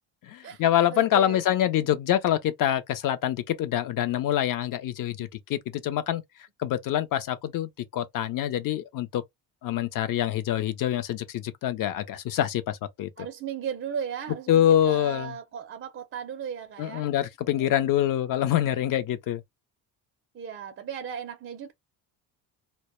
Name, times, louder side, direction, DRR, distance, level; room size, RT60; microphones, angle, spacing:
voice 1, 0.3-6.2 6.6-9.2 9.6-13.3 14.5-15.3 16.8-19.4, left 11 dB, 50° left, 0.5 m, -25 dB
voice 2, 0.9-1.4 13.2-17.1 17.6-17.9 18.7-18.8 20.3-21.7, right 7 dB, 30° right, 0.4 m, -36 dB
2.1 x 2.0 x 2.9 m
cardioid pair, 125°, 45 cm